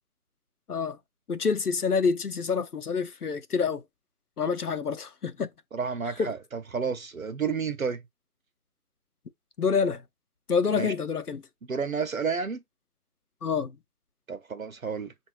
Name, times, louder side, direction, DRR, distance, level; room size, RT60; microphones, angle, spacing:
voice 1, 1.3-3.8 4.4-5.5 6.2-6.3 9.6-10.0 10.5-11.4 13.4-13.7, left 5 dB, 85° left, 0.7 m, -27 dB
voice 2, 5.7-8.0 10.8-10.9 11.7-12.6 14.3-15.1, right 5 dB, 65° right, 0.6 m, -31 dB
5.4 x 2.6 x 2.9 m
figure-of-eight pair, 160°, 44 cm